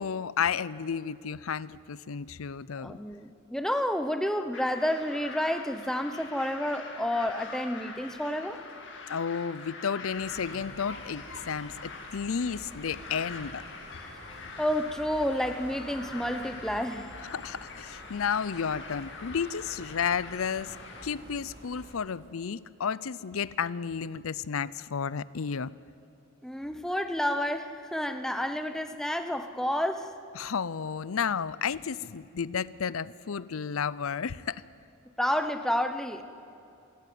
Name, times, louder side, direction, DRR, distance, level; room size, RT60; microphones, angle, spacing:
voice 1, 0.0-3.0 9.1-13.6 17.2-20.8 21.0-25.7 30.4-34.6, left 6 dB, 80° left, 19 dB, 0.6 m, -32 dB
voice 2, 2.8-8.6 14.6-17.1 26.4-30.1 35.2-36.2, equal, ahead, 8 dB, 0.9 m, -30 dB
sound 1, 4.5-21.1, left 4 dB, 55° left, 2.5 m, -44 dB
sound 2, 10.1-22.0, equal, 50° right, 8.0 m, -49 dB
25.5 x 14.0 x 9.4 m, 2.6 s
head